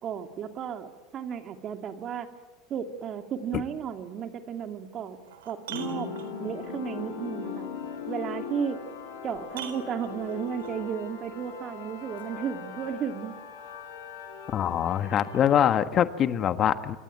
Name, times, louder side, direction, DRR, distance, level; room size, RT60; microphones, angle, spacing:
voice 1, 0.0-2.3 2.7-5.2 5.4-6.1 6.4-7.7 8.1-8.8 9.2-13.3, right 8 dB, 40° right, 6 dB, 2.7 m, -34 dB
sound 1, 4.6-4.7 5.2-6.7 8.7-8.8 9.5-10.8 12.2-12.3, right 10 dB, 80° right, 4.0 m, -43 dB
sound 2, 5.7-15.6, left 6 dB, 80° left, 6.1 m, -39 dB
voice 2, 14.5-17.0, left 10 dB, 40° left, 11 dB, 1.5 m, -24 dB
27.5 x 24.0 x 8.9 m, 1.2 s
hypercardioid pair, 85°, 0 cm